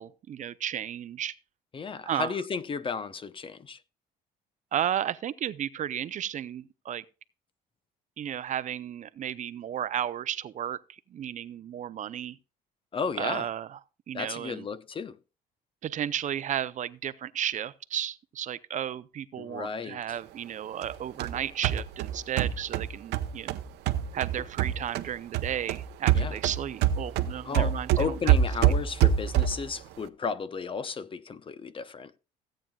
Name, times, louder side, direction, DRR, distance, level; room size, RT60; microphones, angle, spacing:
voice 1, 0.0-1.3 2.0-2.4 4.7-7.0 8.2-12.4 13.2-13.8 14.1-14.7 15.8-23.6 24.1-28.3 28.6-28.7, right 10 dB, 45° right, 0.6 m, -33 dB
voice 2, 1.7-3.8 12.9-13.5 14.1-15.1 19.4-20.0 26.1-26.4 27.4-32.1, left 5 dB, 30° left, 0.7 m, -34 dB
sound 1, 20.8-25.1 25.3-29.7, right 10 dB, 85° right, 0.8 m, -26 dB
16.5 x 8.9 x 2.3 m
cardioid pair, 110°, 17 cm